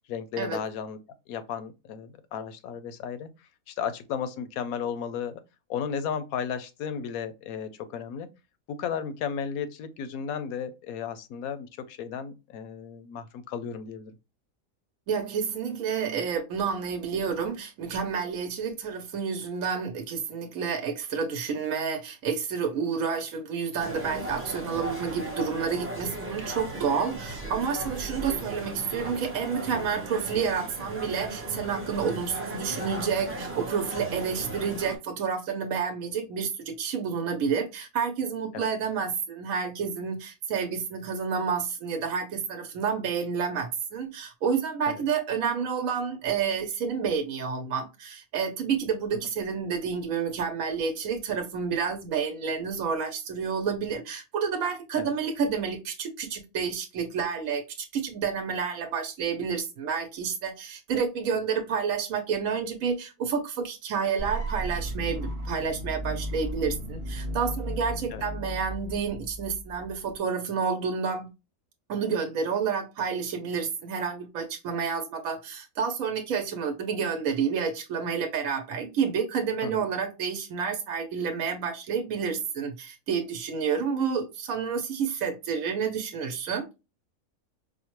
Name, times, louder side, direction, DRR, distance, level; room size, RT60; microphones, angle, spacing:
voice 1, 0.1-1.0 1.3-3.3 3.7-5.4 5.7-8.3 8.7-14.1 38.5-38.7 44.9-45.0 55.0-55.1 68.1-68.2 79.6-79.8, left 7 dB, 80° left, 1.1 m, -34 dB
voice 2, 15.1-71.3 71.9-86.7, right 6 dB, 75° right, 1.1 m, -29 dB
sound 1, 23.8-35.0, right 2 dB, 10° right, 0.7 m, -36 dB
sound 2, 64.2-70.1, right 1 dB, 50° right, 1.1 m, -35 dB
4.9 x 2.1 x 3.0 m
omnidirectional pair, 1.5 m